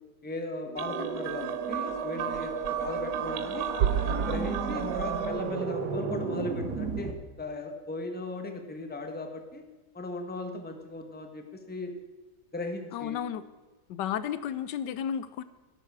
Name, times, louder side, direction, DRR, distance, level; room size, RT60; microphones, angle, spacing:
voice 1, 0.2-3.7 4.0-9.6 9.9-11.9 12.5-13.2, left 2 dB, 5° left, 4 dB, 0.9 m, -37 dB
sound 1, 0.6-7.1, right 5 dB, 70° right, 1.6 m, -33 dB
sound 2, 0.8-5.5, right 9 dB, 90° right, 1.3 m, -33 dB
voice 2, 12.9-13.4 13.9-15.4, left 9 dB, 85° left, 14 dB, 1.3 m, -32 dB
13.0 x 11.5 x 4.7 m, 1.2 s
omnidirectional pair, 1.9 m